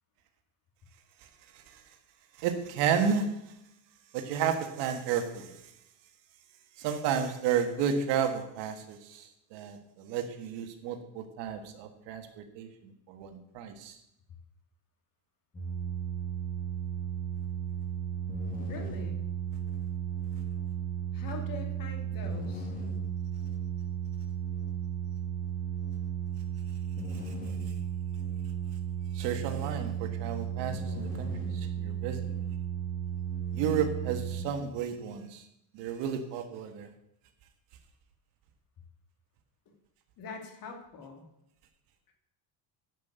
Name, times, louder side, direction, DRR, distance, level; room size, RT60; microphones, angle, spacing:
voice 1, 2.4-3.4 4.1-5.6 6.8-14.0 27.3-27.4 29.1-32.5 33.5-35.5 35.7-36.9, right 7 dB, 80° right, 7 dB, 1.7 m, -32 dB
sound 1, 15.5-34.4, right 8 dB, 20° left, 2.7 m, -34 dB
voice 2, 18.6-19.2 21.1-22.7 39.7-39.8 40.2-41.2, left 4 dB, 50° left, 3 dB, 2.7 m, -43 dB
10.5 x 5.9 x 8.1 m, 0.80 s
cardioid pair, 145°, 42 cm